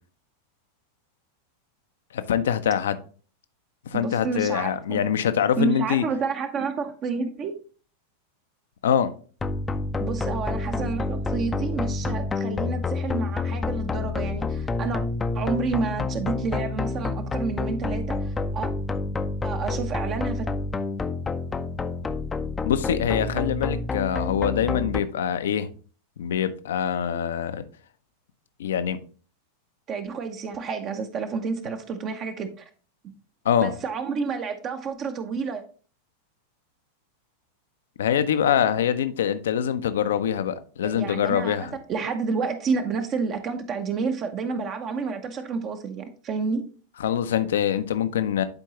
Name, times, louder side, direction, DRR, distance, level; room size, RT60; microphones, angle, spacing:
voice 1, 2.1-3.0 3.9-6.0 8.8-9.1 22.6-25.7 26.2-27.6 28.6-29.0 33.4-33.7 38.0-41.8 47.0-48.4, left 9 dB, 60° left, 0.6 m, -24 dB
voice 2, 3.9-5.0 5.6-7.5 10.0-15.0 15.3-18.7 19.4-20.5 29.9-32.7 33.6-35.6 40.8-41.6 41.9-46.6, right 5 dB, 30° right, 0.8 m, -29 dB
sound 1, 9.4-25.0, left 3 dB, 15° left, 0.6 m, -28 dB
10.5 x 4.5 x 3.0 m
figure-of-eight pair, 90°, 0 cm